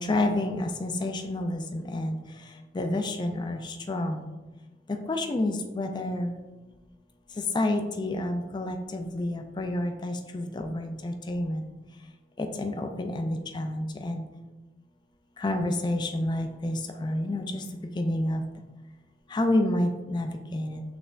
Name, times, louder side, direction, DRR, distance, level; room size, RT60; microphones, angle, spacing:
voice 1, 0.0-2.2 2.7-4.3 4.9-6.3 7.5-11.6 12.4-14.2 15.4-17.6 18.0-18.4 19.3-20.8, left 1 dB, 25° left, 5 dB, 0.4 m, -29 dB
6.2 x 3.4 x 2.5 m, 1.1 s
head